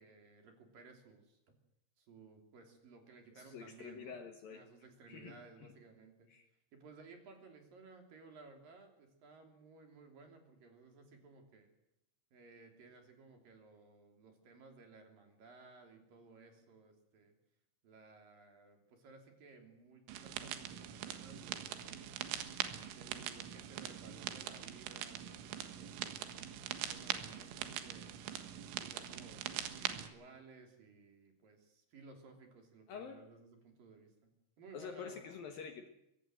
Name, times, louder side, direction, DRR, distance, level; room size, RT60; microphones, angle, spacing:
voice 1, 0.0-1.4 2.0-4.2 4.5-6.3 6.7-11.7 12.3-17.3 17.8-22.4 22.9-28.3 28.8-34.3 34.6-35.3, right 4 dB, 50° right, 4 dB, 4.6 m, -58 dB
voice 2, 3.4-4.6 5.1-5.4 5.6-5.7 6.3-6.5 32.9-33.3 34.7-35.9, left 6 dB, 65° left, 6 dB, 2.7 m, -47 dB
sound 1, 20.1-30.1, right 10 dB, 90° right, 4.1 m, -42 dB
23.0 x 18.5 x 7.8 m, 0.84 s
omnidirectional pair, 5.5 m